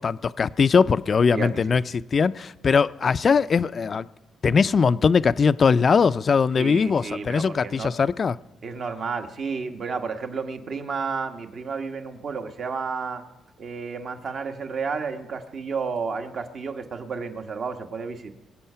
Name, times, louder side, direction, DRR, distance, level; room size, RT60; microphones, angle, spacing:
voice 1, 0.0-4.1 4.4-8.4, left 5 dB, 45° left, 0.4 m, -21 dB
voice 2, 1.3-1.8 6.6-7.9 8.6-13.2 13.6-18.3, right 5 dB, 50° right, 1.3 m, -31 dB
23.0 x 8.4 x 5.6 m
cardioid pair, 90°, 0 cm